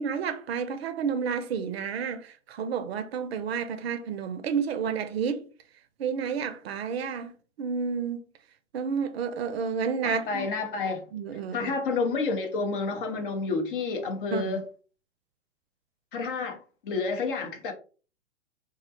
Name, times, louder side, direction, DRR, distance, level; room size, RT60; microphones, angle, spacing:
voice 1, 0.0-5.4 6.0-7.3 7.6-8.2 8.7-10.5 11.1-11.7 14.3-14.6, right 6 dB, 55° right, 0.5 m, -30 dB
voice 2, 10.0-11.0 11.5-14.7 16.1-16.6 16.8-17.7, left 4 dB, 45° left, 0.6 m, -29 dB
2.3 x 2.1 x 2.7 m
figure-of-eight pair, 110°, 37 cm